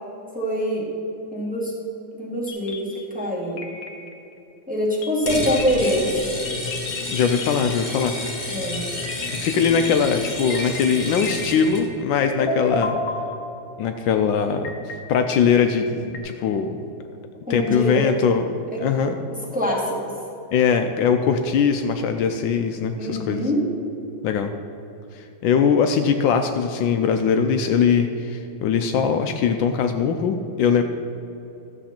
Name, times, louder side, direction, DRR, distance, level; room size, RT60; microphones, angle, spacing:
voice 1, 0.3-0.8 1.3-1.7 2.1-3.6 4.7-6.4 8.5-8.8 17.5-18.0 18.7-18.8 19.5-20.1 23.0-23.6, equal, 5° right, -5 dB, 1.7 m, -24 dB
sound 1, 2.5-3.3 3.6-4.4 5.0-12.1 12.4-13.9 14.6-16.2, left 3 dB, 55° left, 1.2 m, -32 dB
sound 2, 5.2-11.8, left 2 dB, 25° left, 1.2 m, -30 dB
voice 2, 7.1-8.1 9.4-12.9 13.8-16.8 17.5-19.2 20.5-23.5 24.2-24.5 25.1-30.8, left 6 dB, 75° left, 6 dB, 1.3 m, -21 dB
13.0 x 7.3 x 4.3 m, 2.8 s
omnidirectional pair, 2.2 m